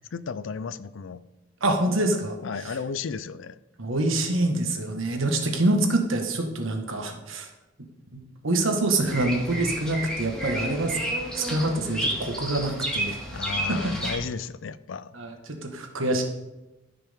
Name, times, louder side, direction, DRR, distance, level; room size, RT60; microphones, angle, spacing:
voice 1, 0.1-1.2 2.4-3.6 13.3-15.1, left 5 dB, 70° left, 15 dB, 0.4 m, -34 dB
voice 2, 1.6-2.4 2.6-2.7 3.8-7.5 8.4-11.0 11.3-13.2 13.7-13.9 15.1-16.2, right 2 dB, 80° right, 3 dB, 1.6 m, -26 dB
Bird vocalization bird call bird song, 9.0-14.1, right 1 dB, 5° left, 2.1 m, -31 dB
14.5 x 6.0 x 3.6 m, 1.0 s
head